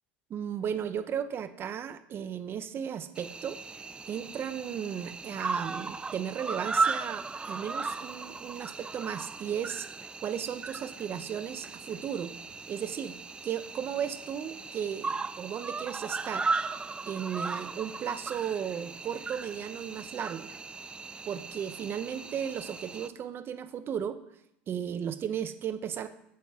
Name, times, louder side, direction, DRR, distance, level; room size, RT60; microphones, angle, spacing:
voice 1, 0.3-3.6 4.1-9.9 10.2-12.3 12.7-13.1 13.4-16.5 17.1-20.5 21.2-24.2 24.7-26.1, right 8 dB, 40° right, 12 dB, 0.7 m, -35 dB
Cricket, 3.2-23.1, right 4 dB, 15° right, 0.4 m, -36 dB
8.5 x 7.6 x 3.7 m, 0.80 s
hypercardioid pair, 95°, 6 cm